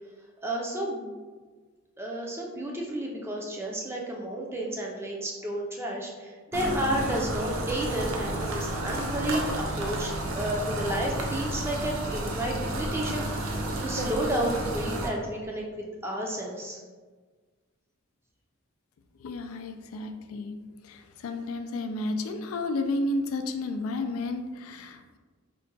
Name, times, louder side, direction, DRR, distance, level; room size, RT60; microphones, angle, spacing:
voice 1, 0.4-1.2 2.0-13.3 13.8-15.6 16.0-16.8, right 1 dB, 10° right, -1 dB, 0.5 m, -31 dB
sound 1, 6.5-15.1, right 1 dB, 85° right, 0.6 m, -31 dB
voice 2, 19.2-20.6 20.9-25.2, left 2 dB, 90° left, 7 dB, 0.4 m, -32 dB
3.7 x 2.2 x 3.9 m, 1.4 s
head